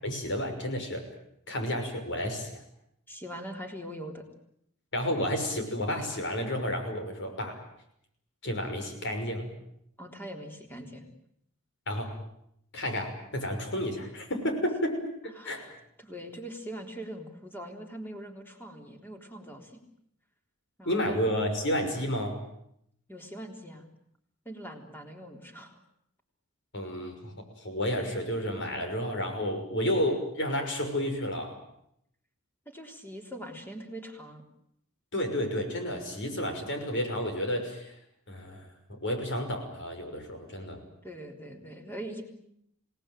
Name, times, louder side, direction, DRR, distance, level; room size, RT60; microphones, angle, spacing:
voice 1, 0.0-1.0 1.5-2.6 4.9-7.6 8.4-9.5 11.9-12.1 12.7-15.6 20.9-22.4 26.7-27.3 27.6-31.6 35.1-37.9 38.3-38.7 39.0-40.8, equal, 55° left, 5 dB, 6.0 m, -31 dB
voice 2, 3.1-4.2 10.0-11.1 15.4-15.7 16.0-19.8 20.8-21.2 23.1-23.9 24.5-25.8 32.7-34.4 41.0-42.2, right 1 dB, 10° left, 3 dB, 3.7 m, -42 dB
27.5 x 19.0 x 9.2 m, 0.75 s
head